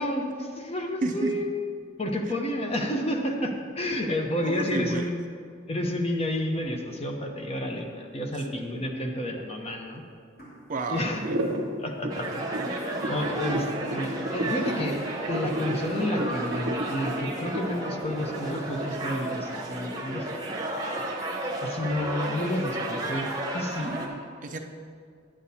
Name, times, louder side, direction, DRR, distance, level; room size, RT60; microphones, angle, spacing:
voice 1, 0.0-1.5 2.0-5.2 5.7-10.0 10.9-11.2 11.8-15.0 15.3-20.3 21.6-23.3 23.5-24.0, left 1 dB, 30° left, 2 dB, 0.8 m, -30 dB
voice 2, 1.0-1.3 4.4-5.0 10.7-11.4 23.8-24.6, right 2 dB, 40° right, 4 dB, 0.5 m, -31 dB
sound 1, 7.6-8.1 8.7-8.8 9.6-9.9 10.2-12.0 12.6-12.7 13.1-13.2 14.0-15.8 16.2-16.3 16.8-16.9 17.5-19.1 19.6-19.7 20.1-20.2 20.5-20.6 20.9-21.0 21.9-22.5, equal, 50° left, 2.3 m, -51 dB
sound 2, 11.2-19.0, right 1 dB, 85° right, 0.8 m, -32 dB
sound 3, 12.1-24.1, right 1 dB, 20° right, 0.9 m, -33 dB
10.5 x 8.6 x 2.8 m, 2.2 s
head